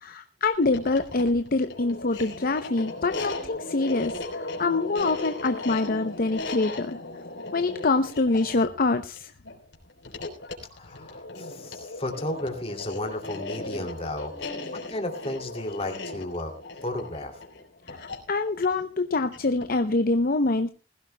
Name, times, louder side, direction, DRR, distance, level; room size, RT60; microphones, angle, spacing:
voice 1, 0.0-7.0 7.5-9.3 17.9-20.7, left 3 dB, 50° left, 9 dB, 0.7 m, -25 dB
sound 1, 0.5-19.8, left 2 dB, 85° left, 3.6 m, -37 dB
voice 2, 10.7-16.5 16.8-17.4, left 1 dB, 35° left, 4 dB, 2.6 m, -34 dB
20.5 x 15.5 x 2.2 m, 0.32 s
head